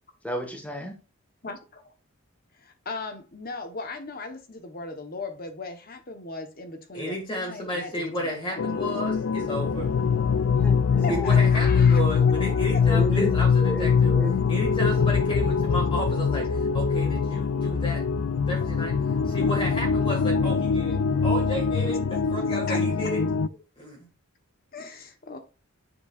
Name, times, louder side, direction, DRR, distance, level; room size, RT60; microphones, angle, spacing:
voice 1, 0.2-1.0 10.5-11.8 12.8-13.3 13.6-14.3, equal, 5° left, 3 dB, 1.5 m, -32 dB
voice 2, 1.4-1.9 2.5-8.9 11.0-12.8 18.6-18.7 21.9-22.0 22.5-23.1 24.7-25.4, left 3 dB, 40° left, 7 dB, 1.0 m, -38 dB
voice 3, 6.9-9.9 11.1-14.1 14.5-18.0 18.5-18.9 19.2-23.2 23.8-24.1, equal, 20° left, 0 dB, 1.8 m, -32 dB
sound 1, 8.6-23.5, left 5 dB, 65° left, 0.4 m, -23 dB
7.7 x 6.8 x 2.4 m, 0.31 s
head